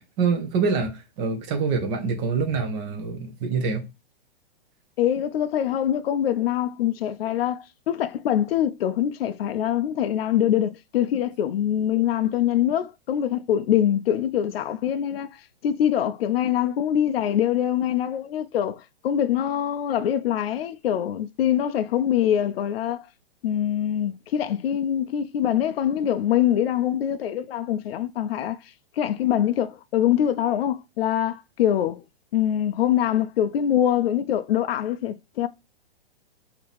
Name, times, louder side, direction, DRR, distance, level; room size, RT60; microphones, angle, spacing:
voice 1, 0.2-3.8, right 5 dB, 25° right, 0.9 m, -25 dB
voice 2, 5.0-23.1 23.4-28.6 29.0-32.0 32.3-35.5, left 10 dB, 75° left, 0.5 m, -24 dB
4.5 x 2.8 x 3.4 m
hypercardioid pair, 155°, 30 cm